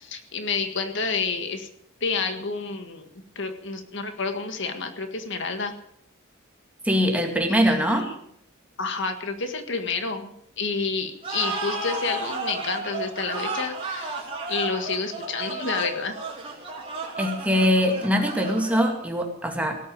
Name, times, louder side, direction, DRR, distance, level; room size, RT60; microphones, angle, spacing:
voice 1, 0.0-1.7 2.0-3.1 3.3-5.7 7.5-7.8 8.8-14.2 14.5-16.2, left 4 dB, 60° left, 7 dB, 1.7 m, -29 dB
voice 2, 6.8-8.1 17.2-19.8, equal, 5° right, 2 dB, 2.3 m, -22 dB
sound 1, 11.2-19.1, right 2 dB, 25° right, 3.8 m, -33 dB
18.0 x 8.6 x 8.8 m, 0.72 s
head